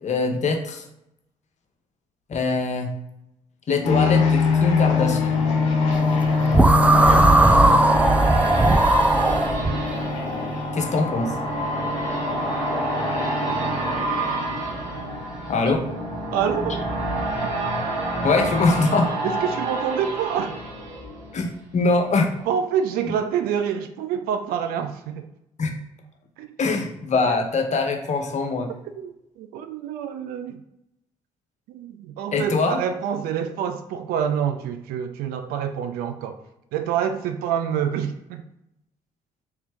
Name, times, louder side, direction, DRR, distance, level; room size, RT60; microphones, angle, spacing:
voice 1, 0.0-0.8 2.3-2.9 3.7-5.4 10.7-11.4 15.5-15.8 18.2-19.1 21.3-21.5 21.7-22.3 25.6-25.7 26.6-28.7 32.3-32.8, left 3 dB, 50° left, 4 dB, 0.8 m, -22 dB
sound 1, 3.8-15.9, left 4 dB, 90° left, 0.5 m, -24 dB
sound 2, 4.4-21.8 22.2-22.3, right 2 dB, 90° right, 0.9 m, -29 dB
sound 3, 6.5-9.7, right 2 dB, 10° right, 0.4 m, -17 dB
voice 2, 16.3-16.8 19.2-20.5 22.4-25.3 26.4-26.5 27.3-27.4 28.9-30.6 31.7-36.4 36.7-38.4, right 8 dB, 70° right, 8 dB, 0.4 m, -27 dB
3.2 x 3.1 x 3.4 m, 0.83 s
hypercardioid pair, 50°, 16 cm